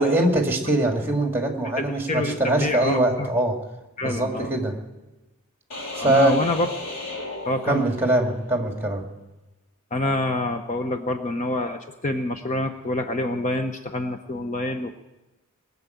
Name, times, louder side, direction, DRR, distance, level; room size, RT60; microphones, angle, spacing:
voice 1, 0.0-3.6 4.0-4.8 6.0-6.4 7.7-9.0, right 1 dB, 10° right, 3 dB, 1.9 m, -22 dB
voice 2, 1.8-3.3 4.0-4.5 6.0-6.7 7.4-7.8 9.9-15.0, left 1 dB, 35° left, 6 dB, 0.7 m, -27 dB
sound 1, 5.7-8.3, left 2 dB, 70° left, 3.3 m, -34 dB
20.5 x 7.2 x 9.2 m, 1.0 s
head